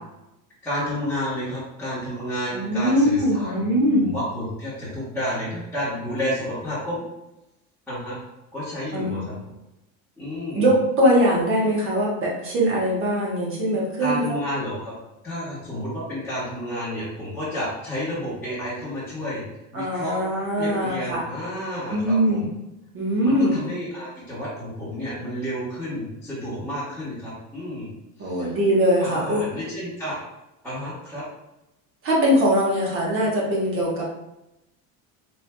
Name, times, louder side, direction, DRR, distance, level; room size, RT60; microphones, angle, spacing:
voice 1, 0.6-3.6 4.0-7.0 7.9-8.2 8.5-9.2 10.2-10.7 14.0-14.9 15.2-19.4 19.7-20.2 20.6-22.5 23.2-27.9 28.2-28.6 29.0-30.2 30.6-31.2, equal, 5° left, -15 dB, 1.2 m, -30 dB
voice 2, 2.5-4.1 8.9-9.2 10.5-14.2 19.7-21.2 21.9-22.5 22.9-23.6 28.2-29.5 32.0-34.0, equal, 35° right, -4 dB, 1.1 m, -21 dB
4.4 x 3.0 x 2.2 m, 0.92 s
cardioid pair, 160°, 38 cm